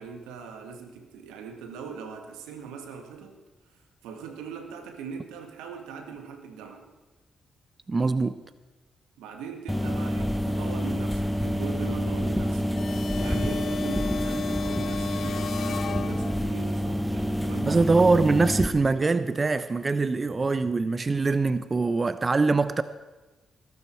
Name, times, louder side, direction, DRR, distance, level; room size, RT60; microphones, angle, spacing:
voice 1, 0.0-3.4 4.0-6.9 9.2-12.8 13.2-17.9, right 6 dB, 90° right, 1.7 m, -40 dB
voice 2, 7.9-8.4 17.7-22.8, right 3 dB, 35° right, 0.7 m, -23 dB
sound 1, 9.7-18.7, equal, 5° left, 1.4 m, -28 dB
sound 2, 12.8-16.7, left 8 dB, 60° left, 0.4 m, -36 dB
20.5 x 12.0 x 4.5 m
supercardioid pair, 55°, 0 cm